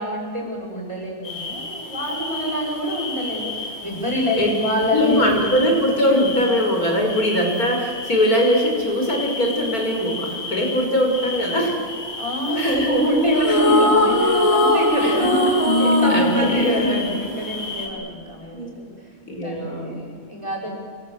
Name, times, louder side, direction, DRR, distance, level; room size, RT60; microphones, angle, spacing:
voice 1, 0.0-5.6 12.2-19.2 19.4-20.7, equal, 20° right, -1 dB, 7.6 m, -26 dB
sound 1, 1.2-17.9, left 3 dB, 45° left, 6.9 m, -32 dB
voice 2, 4.9-11.8 12.6-12.9 13.7-13.8 15.0-15.3 15.8-16.9 18.5-18.8 19.3-19.9, left 1 dB, 80° left, 2 dB, 6.0 m, -21 dB
sound 2, 13.4-17.8, left 1 dB, 20° left, 2.7 m, -19 dB
28.5 x 23.5 x 8.0 m, 2.1 s
omnidirectional pair, 1.5 m